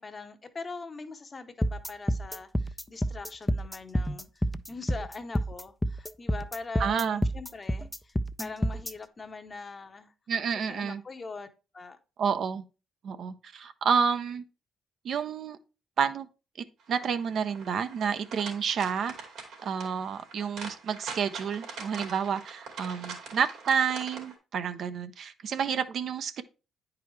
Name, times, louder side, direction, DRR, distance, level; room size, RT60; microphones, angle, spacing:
voice 1, 0.0-10.1 10.5-11.5 11.7-12.0, left 4 dB, 30° left, 0.8 m, -42 dB
sound 1, 1.6-8.9, equal, 5° left, 0.4 m, -29 dB
voice 2, 6.8-7.2 10.3-11.0 12.2-12.6 13.0-14.4 15.0-15.6 16.0-16.3 16.9-19.1 19.6-26.4, right 7 dB, 60° right, 0.5 m, -29 dB
sound 2, 17.0-24.3, right 4 dB, 75° right, 2.5 m, -43 dB
9.2 x 4.8 x 3.2 m
cardioid pair, 95°, 0 cm